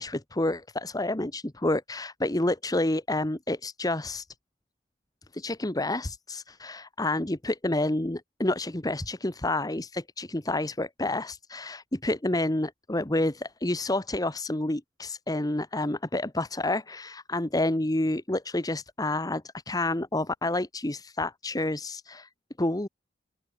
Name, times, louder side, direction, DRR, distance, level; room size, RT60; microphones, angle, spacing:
voice 1, 0.0-4.3 5.3-22.3 22.6-22.9, left 2 dB, 20° left, 1.2 m, -29 dB
open air
head